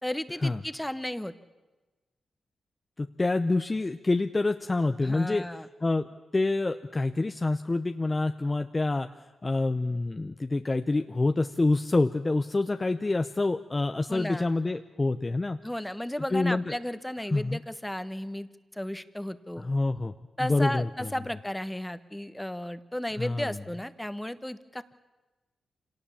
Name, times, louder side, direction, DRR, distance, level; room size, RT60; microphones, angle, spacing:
voice 1, 0.0-1.3 5.0-5.7 14.1-14.5 15.6-19.7 20.4-24.9, left 1 dB, 10° left, 12 dB, 1.2 m, -34 dB
voice 2, 3.0-5.5 5.8-6.1 6.3-9.1 9.4-15.6 16.3-16.6 17.3-17.6 19.6-20.1 20.4-20.9 23.2-23.6, left 2 dB, 30° left, 8 dB, 0.8 m, -27 dB
26.0 x 18.0 x 7.2 m, 1.2 s
supercardioid pair, 45°, 0 cm